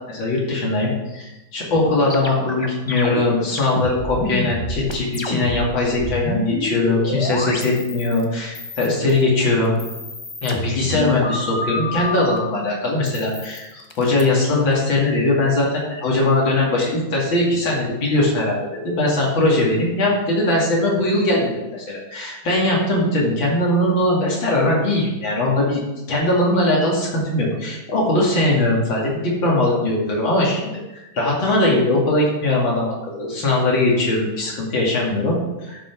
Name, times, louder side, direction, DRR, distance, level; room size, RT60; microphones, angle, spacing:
voice 1, 0.1-9.7 10.4-18.6 18.8-25.8 26.1-35.8, left 2 dB, 80° left, -3 dB, 3.0 m, -20 dB
sound 1, 1.7-8.2 8.5-9.2 9.6-12.4 13.0-14.2, left 2 dB, 40° left, 0.4 m, -28 dB
12.0 x 5.9 x 4.6 m, 1.0 s
omnidirectional pair, 2.1 m